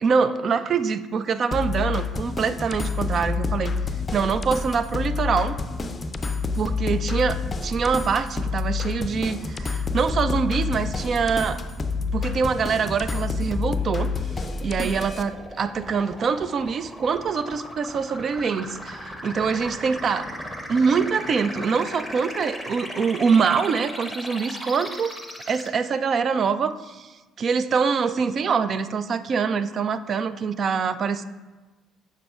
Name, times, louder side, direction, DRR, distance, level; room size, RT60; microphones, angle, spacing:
voice 1, 0.0-3.8 4.1-5.6 6.6-11.6 12.1-20.3 20.7-25.1 25.5-31.2, right 5 dB, 40° right, 13 dB, 0.3 m, -24 dB
sound 1, 1.5-15.2, left 4 dB, 25° left, 0.5 m, -28 dB
sound 2, 11.7-25.7, equal, ahead, 0.9 m, -38 dB
6.6 x 6.5 x 2.4 m, 1.2 s
figure-of-eight pair, 50°, 0 cm